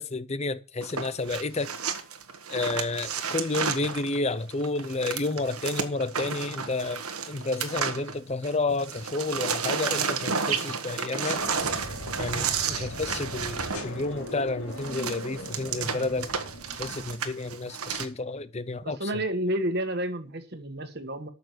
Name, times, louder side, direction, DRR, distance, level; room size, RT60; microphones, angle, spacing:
voice 1, 0.0-1.8 2.5-11.4 12.2-16.3 16.8-19.1, left 3 dB, 30° left, 0.6 m, -31 dB
sound 1, 0.8-8.5 8.8-18.1, right 6 dB, 85° right, 1.4 m, -32 dB
sound 2, 11.2-17.2, equal, 85° left, 3.0 m, -39 dB
voice 2, 18.8-21.3, right 1 dB, 45° right, 1.5 m, -30 dB
8.7 x 6.7 x 8.0 m
head